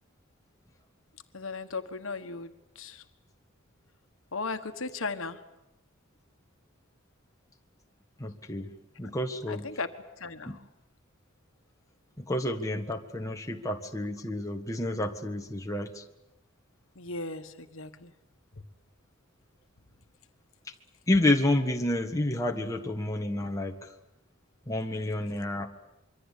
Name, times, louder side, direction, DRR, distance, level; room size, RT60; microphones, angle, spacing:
voice 1, 1.3-3.0 4.3-5.4 9.5-9.9 10.2-10.6 16.9-18.1 18.6-18.7, left 3 dB, 70° left, 8 dB, 1.5 m, -37 dB
voice 2, 8.2-9.7 10.5-10.6 12.2-16.0 21.1-23.9 24.7-25.7, left 1 dB, 15° left, 3 dB, 1.7 m, -29 dB
26.0 x 23.5 x 8.5 m, 0.90 s
head